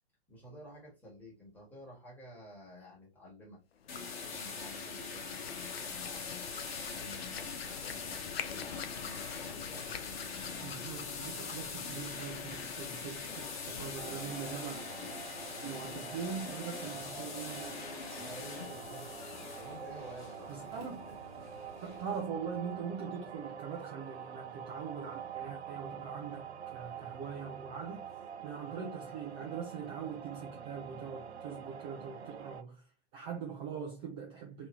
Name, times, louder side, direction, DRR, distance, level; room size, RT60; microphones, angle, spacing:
voice 1, 0.3-10.8 13.6-15.8 18.1-21.8, left 1 dB, 5° left, 1.7 m, -52 dB
Hands, 3.8-15.2, left 8 dB, 65° left, 0.5 m, -47 dB
sound 1, 3.9-22.2, left 5 dB, 45° left, 1.1 m, -43 dB
voice 2, 10.6-14.8 15.6-17.8 20.5-21.1 21.8-28.1 28.4-32.8 33.1-34.7, right 6 dB, 25° right, 0.7 m, -42 dB
sound 2, 14.0-32.6, right 7 dB, 75° right, 0.6 m, -46 dB
3.4 x 3.1 x 3.0 m
figure-of-eight pair, 120°, 33 cm